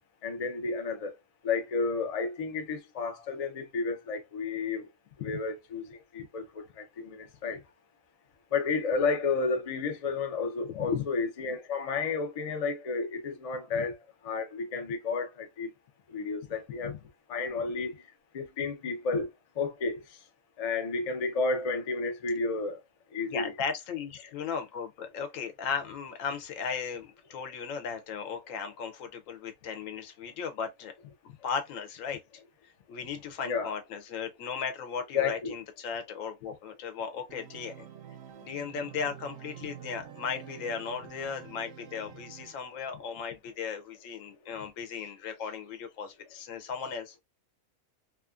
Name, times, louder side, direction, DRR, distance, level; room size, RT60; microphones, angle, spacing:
voice 1, 0.2-1.1 1.4-4.9 5.2-5.9 6.1-6.4 7.0-7.6 8.5-13.9 14.3-15.3 15.6-15.7 16.1-16.9 17.3-17.9 18.3-19.3 19.6-20.0 20.6-22.8 23.1-23.5 33.4-33.7 35.1-35.5, left 4 dB, 55° left, 0.4 m, -31 dB
voice 2, 23.3-30.9 31.4-32.2 32.9-37.9 38.4-47.2, left 6 dB, 75° left, 1.0 m, -36 dB
Organ, 37.3-43.0, right 10 dB, 70° right, 0.9 m, -48 dB
2.8 x 2.4 x 2.3 m
omnidirectional pair, 1.4 m